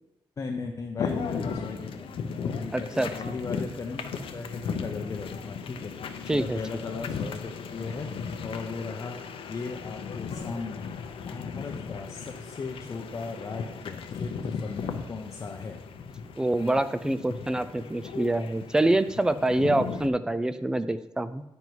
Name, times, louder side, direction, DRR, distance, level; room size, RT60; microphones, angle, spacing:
voice 1, 0.4-9.2 9.5-10.9 11.2-15.8, left 4 dB, 35° left, 2 dB, 0.6 m, -37 dB
sound 1, 1.0-20.1, left 6 dB, 90° left, 0.7 m, -36 dB
voice 2, 2.7-3.3 6.3-6.6 16.4-21.4, right 1 dB, 10° right, 12 dB, 0.3 m, -26 dB
9.4 x 5.4 x 4.6 m, 0.91 s
wide cardioid pair, 180°, 9 cm